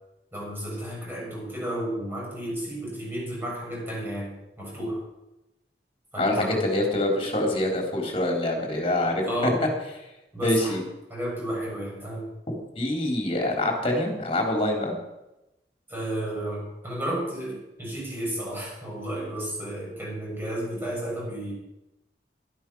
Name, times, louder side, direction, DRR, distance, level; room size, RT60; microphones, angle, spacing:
voice 1, 0.3-5.0 6.1-6.6 9.2-9.6 10.3-10.8 11.1-12.3 15.9-21.5, right 1 dB, 10° right, -5 dB, 7.0 m, -32 dB
voice 2, 6.2-9.5 10.4-10.8 12.8-15.0, left 1 dB, 30° left, 1 dB, 3.7 m, -25 dB
12.5 x 12.0 x 6.2 m, 0.95 s
head